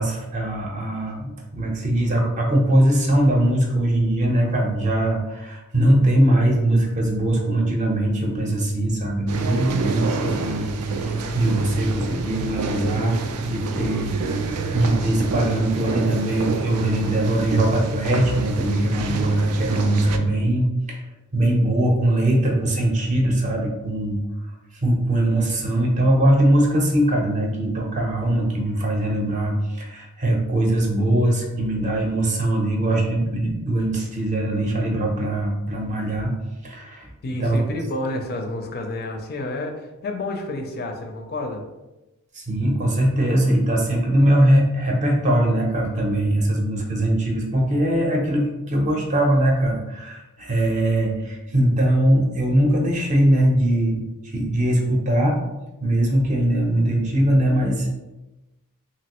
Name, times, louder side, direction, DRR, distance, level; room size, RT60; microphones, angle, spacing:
voice 1, 0.0-21.0 21.3-24.2 24.8-36.3 36.6-37.1 37.4-37.6 42.3-55.4 55.8-57.9, right 1 dB, 35° right, 0 dB, 0.6 m, -21 dB
sound 1, 9.3-20.2, right 3 dB, 75° right, 0.4 m, -28 dB
voice 2, 37.2-41.6, left 2 dB, 45° left, 3 dB, 0.4 m, -29 dB
3.1 x 2.6 x 2.9 m, 1.0 s
head